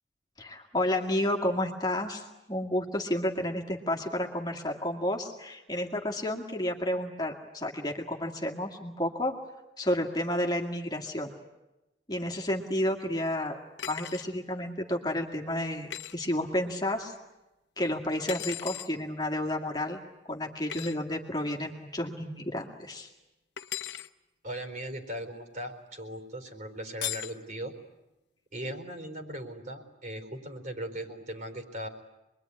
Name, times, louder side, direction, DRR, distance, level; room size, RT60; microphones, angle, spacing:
voice 1, 0.4-9.3 9.8-11.3 12.1-13.6 13.9-17.1 17.8-20.0 20.3-23.1, left 1 dB, 20° left, 1 dB, 2.2 m, -31 dB
sound 1, 13.8-14.3 15.9-16.1 18.3-18.9 20.7-20.9 23.6-24.1 27.0-27.4, left 11 dB, 75° left, 0.9 m, -37 dB
voice 2, 24.4-27.7 28.5-31.9, right 1 dB, 45° right, 5 dB, 4.3 m, -38 dB
27.0 x 22.5 x 9.8 m, 0.98 s
head